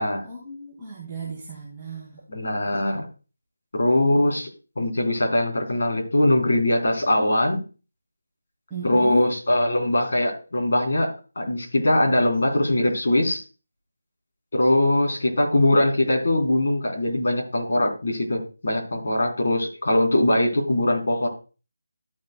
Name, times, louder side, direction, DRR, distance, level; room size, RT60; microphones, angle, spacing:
voice 1, 0.2-2.2 3.8-4.3 8.7-9.3, right 2 dB, 5° right, -10 dB, 2.0 m, -36 dB
voice 2, 2.3-3.1 3.7-4.5 4.8-7.6 8.8-11.1 11.4-13.4 14.5-21.3, left 1 dB, 50° left, -1 dB, 3.5 m, -21 dB
13.5 x 7.3 x 2.2 m, 0.34 s
figure-of-eight pair, 175°, 0 cm